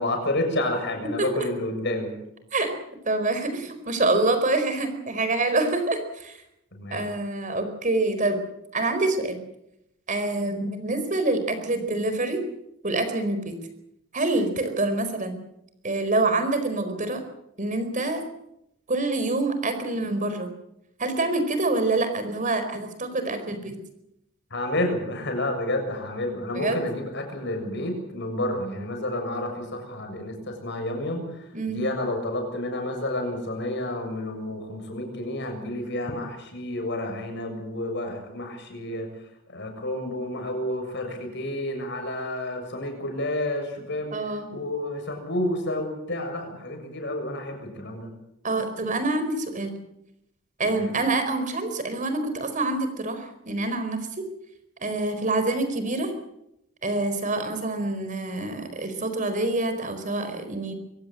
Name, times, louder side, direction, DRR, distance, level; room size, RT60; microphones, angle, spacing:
voice 1, 0.0-2.1 6.7-7.1 24.5-39.1 39.5-44.2 44.5-48.1 50.7-50.9, left 1 dB, 55° left, 4 dB, 7.1 m, -30 dB
voice 2, 3.0-6.4 6.9-8.4 8.7-9.4 10.1-12.4 12.8-13.6 14.1-15.4 15.8-17.2 17.6-18.3 18.9-20.5 21.0-23.8 26.5-26.8 31.5-31.8 44.1-44.5 48.4-49.8 50.6-54.2 54.8-56.1 56.8-60.7, right 2 dB, 40° right, 9 dB, 4.6 m, -26 dB
24.5 x 17.5 x 7.8 m, 0.82 s
head